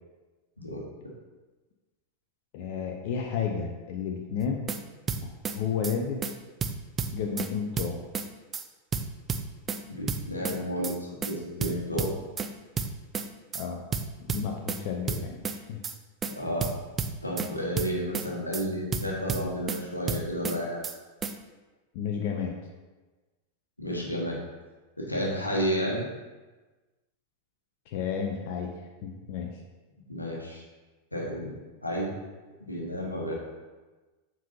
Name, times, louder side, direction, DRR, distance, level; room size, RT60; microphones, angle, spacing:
voice 1, 2.5-4.7 5.2-6.4 7.1-8.0 13.5-13.8 14.2-15.8 21.9-22.5 27.9-28.7 29.0-29.5, left 6 dB, 45° left, 2 dB, 0.6 m, -32 dB
sound 1, 4.4-4.8 5.1-5.6 5.8-6.0 6.2-6.3 6.6-7.5 7.8-8.3 8.5-8.6 8.9-9.8 10.1-10.6 10.8-11.0 11.2-11.3 11.6-12.5 12.8-13.3 13.5-13.6 13.9-14.8 15.1-15.6 15.8-16.0 16.2-16.3 16.6-17.5 17.8-18.3 18.5-18.6 18.9-19.8 20.1-20.6 20.8-21.0 21.2-21.3, right 5 dB, 20° right, 0.4 m, -31 dB
voice 2, 9.9-12.1 16.2-16.7 17.2-20.8 23.8-24.4 25.0-26.0 30.1-30.6 31.1-31.6 31.8-32.1 32.6-33.3, equal, 85° left, -3 dB, 1.4 m, -31 dB
7.4 x 5.4 x 2.8 m, 1.2 s
figure-of-eight pair, 90°, 0 cm